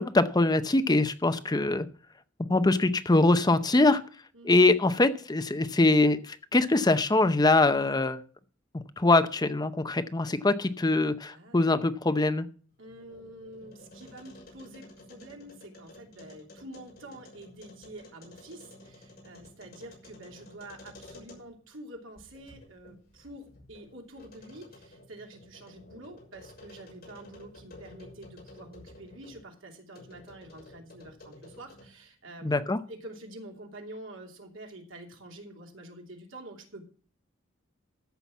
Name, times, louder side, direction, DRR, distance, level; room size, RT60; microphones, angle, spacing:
voice 1, 0.0-1.9 2.5-4.0 4.4-8.2 8.7-12.5 32.4-32.8, left 2 dB, 20° left, 11 dB, 0.6 m, -23 dB
voice 2, 11.3-11.7 12.8-36.9, right 1 dB, 70° right, 2 dB, 2.8 m, -47 dB
sound 1, 12.7-21.7 22.1-29.4 29.9-32.0, left 1 dB, 50° left, 6.7 m, -52 dB
14.0 x 5.7 x 7.2 m, 0.41 s
head